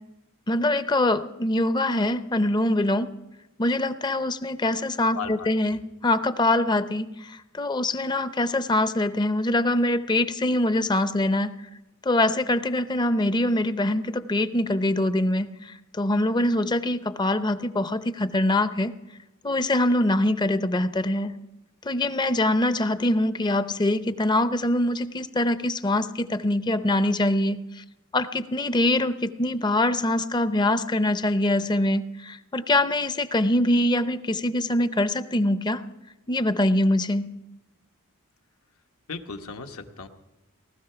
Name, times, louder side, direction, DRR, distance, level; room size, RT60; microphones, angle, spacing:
voice 1, 0.5-3.1 3.6-11.5 12.0-18.9 19.4-21.3 21.8-27.8 28.1-35.8 36.3-37.3, left 1 dB, 20° left, 12 dB, 0.6 m, -24 dB
voice 2, 5.1-5.8 39.1-40.1, left 5 dB, 75° left, 5 dB, 1.2 m, -36 dB
19.0 x 13.0 x 5.8 m, 0.99 s
head